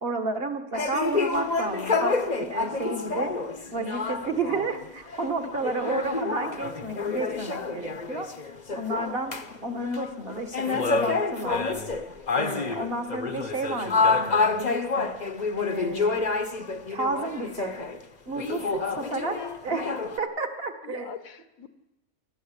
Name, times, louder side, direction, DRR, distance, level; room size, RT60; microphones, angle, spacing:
voice 1, 0.0-3.3 3.7-8.3 8.7-9.3 9.6-11.7 12.3-15.1 15.6-16.3 16.9-17.7 18.3-18.6 19.0-19.3 19.6-19.8 20.2-21.1, right 3 dB, 40° right, 6 dB, 2.0 m, -31 dB
sound 1, 0.7-9.5 9.8-18.0 18.3-20.2, left 4 dB, 35° left, 1.0 m, -28 dB
voice 2, 5.2-5.9 18.6-19.6 20.8-21.7, left 6 dB, 70° left, 10 dB, 1.6 m, -42 dB
25.0 x 14.5 x 8.4 m, 1.0 s
omnidirectional pair, 1.5 m